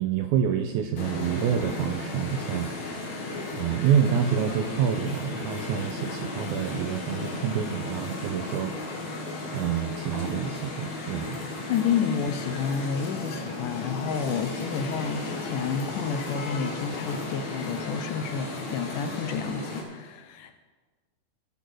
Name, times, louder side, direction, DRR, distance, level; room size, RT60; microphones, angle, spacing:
voice 1, 0.0-2.7 3.5-8.7 9.5-11.4, right 8 dB, 85° right, 6 dB, 1.8 m, -27 dB
sound 1, 1.0-19.8, left 2 dB, 55° left, 3.1 m, -35 dB
voice 2, 11.7-20.6, left 7 dB, 75° left, 8 dB, 2.2 m, -30 dB
16.5 x 6.1 x 6.2 m, 1.3 s
omnidirectional pair, 4.1 m